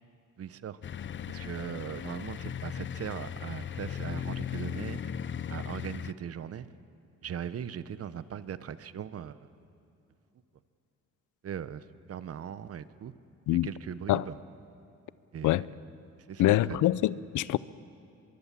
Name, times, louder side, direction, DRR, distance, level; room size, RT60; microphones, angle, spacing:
voice 1, 0.4-0.8 1.3-5.1 5.5-6.7 7.2-9.5 11.4-13.1 13.5-14.3 15.3-15.7 16.3-16.8, right 8 dB, 50° right, 14 dB, 1.0 m, -39 dB
sound 1, 0.8-6.1, left 9 dB, 40° left, 0.7 m, -37 dB
voice 2, 16.4-17.6, left 15 dB, 80° left, 19 dB, 0.6 m, -25 dB
23.5 x 22.5 x 7.5 m, 2.7 s
cardioid pair, 90°, 30 cm